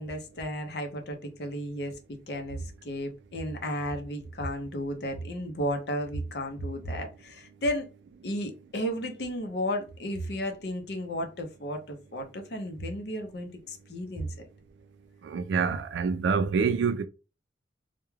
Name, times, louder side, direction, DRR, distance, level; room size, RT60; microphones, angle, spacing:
voice 1, 0.0-1.9 2.3-7.9 8.2-14.3, equal, 65° left, 0.6 m, -33 dB
voice 2, 15.3-17.1, right 5 dB, 80° right, 0.3 m, -26 dB
2.3 x 2.1 x 3.0 m
head